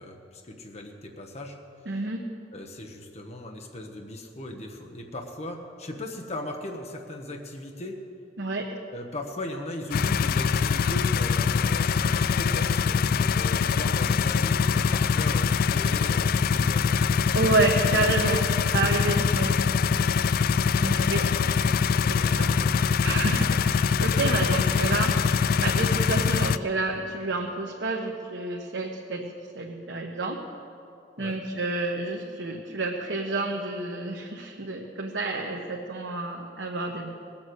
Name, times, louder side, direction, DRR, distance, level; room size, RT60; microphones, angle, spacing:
voice 1, 0.0-1.6 2.5-8.0 8.9-17.6 17.8-18.1 20.1-20.3 20.8-22.7 26.0-26.3 31.2-31.4, left 1 dB, 35° left, 3 dB, 1.1 m, -38 dB
voice 2, 1.9-2.2 8.4-8.7 17.3-19.6 20.8-21.2 22.1-22.5 23.0-30.4 31.2-37.1, right 3 dB, 75° right, 0 dB, 1.1 m, -29 dB
sound 1, 9.9-26.6, left 6 dB, 55° left, 0.3 m, -23 dB
19.5 x 7.2 x 8.0 m, 2.7 s
head